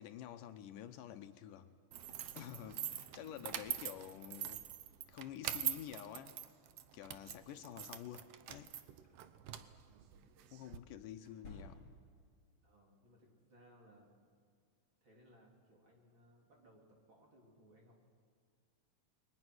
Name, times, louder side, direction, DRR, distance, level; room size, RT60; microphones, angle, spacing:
voice 1, 0.0-1.7 2.4-4.6 5.1-6.3 6.9-8.7 10.5-11.9, left 10 dB, 75° left, 9 dB, 2.4 m, -49 dB
sound 1, 1.9-10.8, right 11 dB, 75° right, 1.4 m, -44 dB
voice 2, 2.6-2.9 3.4-3.8 7.2-7.5 9.9-10.3 12.6-14.1 15.0-18.0, equal, 35° right, -1 dB, 3.9 m, -65 dB
sound 2, 9.0-9.1 11.2-12.2, left 2 dB, 35° left, 6.2 m, -54 dB
30.0 x 22.0 x 6.2 m, 2.1 s
omnidirectional pair, 3.9 m